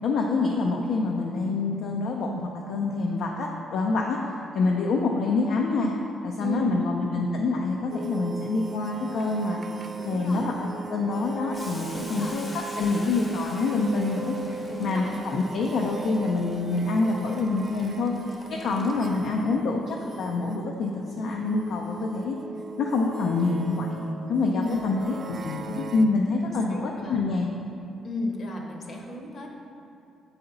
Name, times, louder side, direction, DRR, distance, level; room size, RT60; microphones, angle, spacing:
voice 1, 0.0-5.9 6.2-9.6 10.0-14.3 14.8-18.1 18.5-22.4 22.8-24.0 24.3-27.5, left 3 dB, 75° left, 0 dB, 0.4 m, -26 dB
voice 2, 6.4-6.8 10.0-10.5 11.9-12.4 14.6-15.2 18.6-19.2 24.5-25.0 26.4-27.3 28.0-29.5, left 1 dB, 50° left, 1 dB, 0.9 m, -34 dB
sound 1, 7.9-26.0, right 4 dB, 50° right, 0.4 m, -39 dB
Boiling, 11.5-19.3, left 2 dB, 25° left, 0.6 m, -46 dB
6.7 x 4.1 x 3.9 m, 2.6 s
cardioid pair, 90°, 0 cm